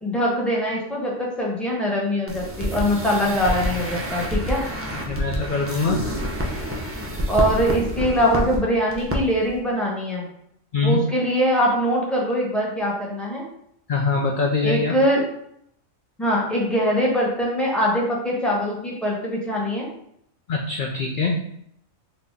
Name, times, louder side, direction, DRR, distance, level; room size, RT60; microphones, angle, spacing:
voice 1, 0.0-4.6 7.3-10.3 10.8-13.4 14.6-15.2 16.2-19.9, equal, ahead, -4 dB, 0.9 m, -22 dB
sound 1, 2.3-8.6 8.9-9.2 9.4-9.6, equal, 20° right, 0.4 m, -28 dB
voice 2, 5.1-6.0 10.7-11.1 13.9-14.9 20.5-21.4, left 3 dB, 60° left, 0 dB, 0.5 m, -23 dB
4.1 x 2.8 x 3.6 m, 0.71 s
omnidirectional pair, 1.4 m